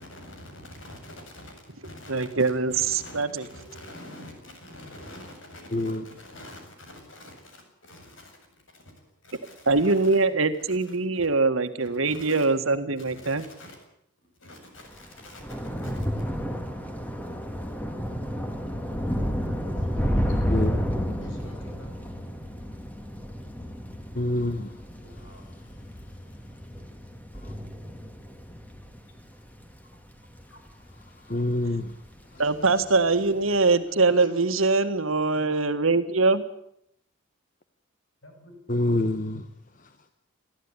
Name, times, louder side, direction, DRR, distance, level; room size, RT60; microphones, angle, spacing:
voice 1, 0.0-8.4 8.7-10.2 10.7-11.3 11.8-12.5 13.0-13.8 14.2-16.3 19.8-20.8 21.2-22.0 25.0-25.5 30.5-30.6 32.3-35.6 38.2-38.6, left 1 dB, 70° left, 7.7 m, -47 dB
voice 2, 2.1-3.5 9.7-13.5 32.4-36.4, right 3 dB, 85° right, 1.9 m, -23 dB
voice 3, 5.7-6.0 20.5-20.7 24.1-24.7 31.3-32.0 38.7-39.5 39.8-39.9, left 1 dB, 40° left, 1.1 m, -26 dB
Thunder / Rain, 14.9-31.5 31.8-32.2 32.5-32.7, equal, 10° left, 1.9 m, -31 dB
22.5 x 14.5 x 10.0 m
head